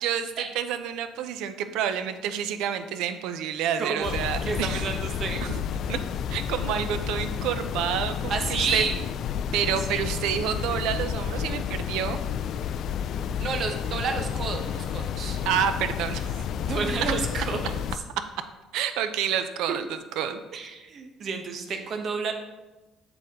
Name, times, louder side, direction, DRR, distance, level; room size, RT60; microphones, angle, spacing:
voice 1, 0.0-4.8 5.4-5.6 5.9-6.0 6.3-8.8 9.5-12.2 15.4-16.3 18.2-18.3 18.7-20.4, right 9 dB, 80° right, 10 dB, 0.6 m, -29 dB
voice 2, 3.8-4.1 4.4-5.4 8.3-9.0 9.9-10.0 13.4-15.4 16.7-17.7 20.5-22.3, right 5 dB, 45° right, 5 dB, 1.0 m, -30 dB
sound 1, 4.0-18.0, left 8 dB, 50° left, 0.3 m, -31 dB
7.8 x 7.0 x 3.7 m, 1.1 s
cardioid pair, 140°, 0 cm